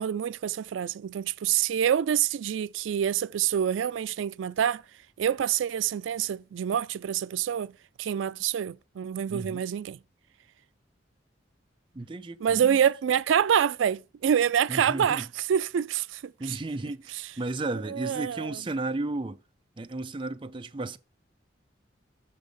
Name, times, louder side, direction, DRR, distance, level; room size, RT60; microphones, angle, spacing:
voice 1, 0.0-4.8 5.2-7.7 8.0-10.0 12.4-16.5 17.1-17.2 17.9-18.6, right 9 dB, 85° right, 0.3 m, -26 dB
voice 2, 9.3-9.6 11.9-12.8 14.7-15.3 16.4-19.4 19.8-21.0, right 2 dB, 25° right, 0.5 m, -34 dB
6.3 x 5.3 x 5.2 m
head